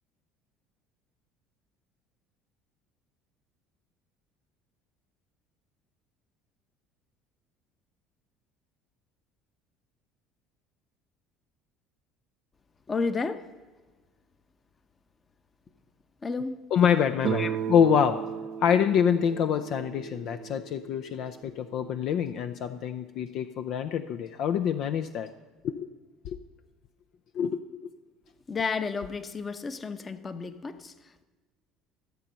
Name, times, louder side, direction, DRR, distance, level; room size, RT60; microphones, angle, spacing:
voice 1, 12.9-13.4 16.2-16.6 17.4-17.6 28.5-31.2, left 4 dB, 30° left, 0.9 m, -32 dB
voice 2, 16.7-18.2 18.6-25.3 25.6-25.9 26.2-26.4 27.3-27.9, left 8 dB, 60° left, 0.5 m, -26 dB
Guitar, 17.2-22.0, right 8 dB, 55° right, 0.5 m, -35 dB
13.5 x 7.6 x 5.5 m
hypercardioid pair, 70°, 0 cm